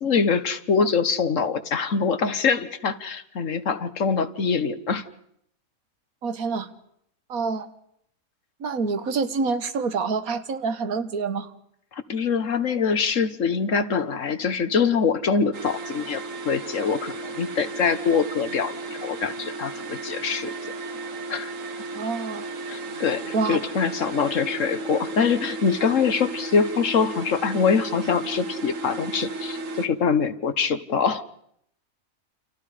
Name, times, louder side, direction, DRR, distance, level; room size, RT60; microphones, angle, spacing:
voice 1, 0.0-5.0 12.1-20.5 21.3-21.5 22.7-31.2, left 5 dB, 65° left, 11 dB, 1.6 m, -24 dB
voice 2, 6.2-6.7 7.3-7.7 8.6-11.5 22.0-22.5 23.3-23.6, right 4 dB, 85° right, 11 dB, 1.8 m, -27 dB
sound 1, 15.5-29.9, right 2 dB, 65° right, 1.8 m, -34 dB
29.0 x 28.0 x 5.0 m, 0.72 s
omnidirectional pair, 1.5 m